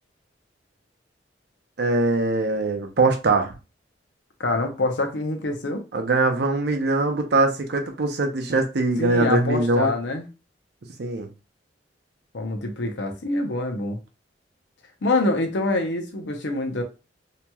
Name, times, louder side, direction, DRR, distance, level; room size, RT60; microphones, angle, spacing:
voice 1, 1.8-3.5 5.9-9.9 11.0-11.3, right 2 dB, 65° right, 0.6 m, -22 dB
voice 2, 4.4-5.8 9.0-10.2 12.3-14.0 15.0-16.8, left 2 dB, 80° left, 0.7 m, -25 dB
2.9 x 2.9 x 2.2 m
head